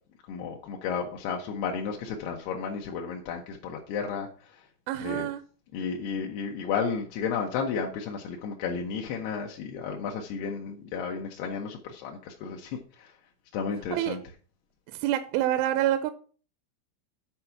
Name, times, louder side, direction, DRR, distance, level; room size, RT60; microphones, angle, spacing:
voice 1, 0.3-4.7 5.0-5.3 5.7-13.2 13.5-14.2, left 6 dB, 80° left, 0 dB, 2.3 m, -33 dB
voice 2, 4.9-5.4 13.9-14.2 14.9-16.1, right 13 dB, 85° right, 11 dB, 2.9 m, -27 dB
9.5 x 4.4 x 5.7 m, 0.41 s
omnidirectional pair, 5.7 m